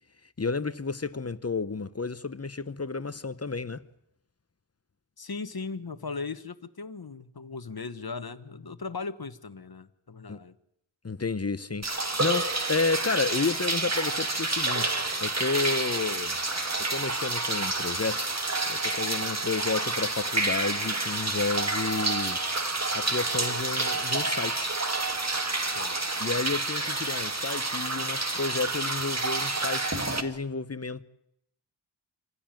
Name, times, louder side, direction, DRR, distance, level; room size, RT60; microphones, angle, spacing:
voice 1, 0.4-3.8 10.3-10.4 11.0-16.4 16.9-18.3 18.7-24.7 25.0-25.2 26.2-31.0, left 4 dB, 30° left, 0.9 m, -31 dB
voice 2, 5.2-10.5 25.7-26.0, left 4 dB, 45° left, 1.3 m, -38 dB
sound 1, 11.8-30.2, right 2 dB, 30° right, 1.9 m, -29 dB
26.5 x 15.5 x 9.0 m
wide cardioid pair, 75°, 49 cm